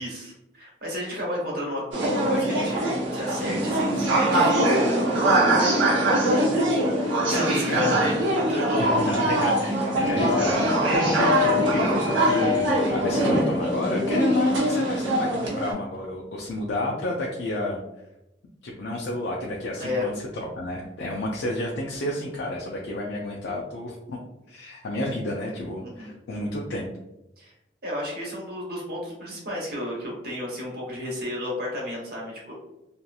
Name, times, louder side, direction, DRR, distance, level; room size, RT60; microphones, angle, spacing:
voice 1, 0.0-5.8 6.2-6.7 7.0-9.2 19.8-20.1 25.8-26.1 27.4-27.5 27.8-32.5, left 1 dB, 50° right, -3 dB, 1.0 m, -32 dB
sound 1, 1.9-15.7, right 1 dB, 90° right, 0.8 m, -22 dB
voice 2, 7.0-7.4 7.7-8.1 9.0-17.8 18.6-20.1 20.4-24.2 24.5-26.9, left 1 dB, 70° left, -2 dB, 0.4 m, -30 dB
2.8 x 2.4 x 2.3 m, 0.91 s
head